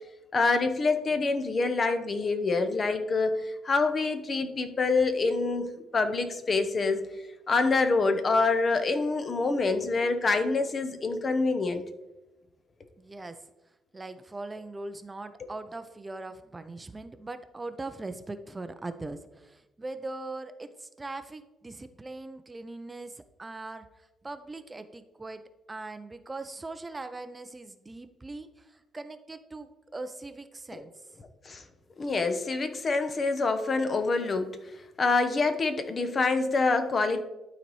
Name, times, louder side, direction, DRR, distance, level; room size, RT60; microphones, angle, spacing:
voice 1, 0.3-7.1 7.5-11.8 30.7-30.8 31.4-31.6 32.0-34.6 35.0-37.2, left 3 dB, 40° left, 9 dB, 0.8 m, -26 dB
voice 2, 13.0-13.4 13.9-30.9, right 2 dB, 20° right, 10 dB, 0.4 m, -41 dB
11.5 x 4.1 x 3.1 m, 1.0 s
cardioid pair, 90°, 0 cm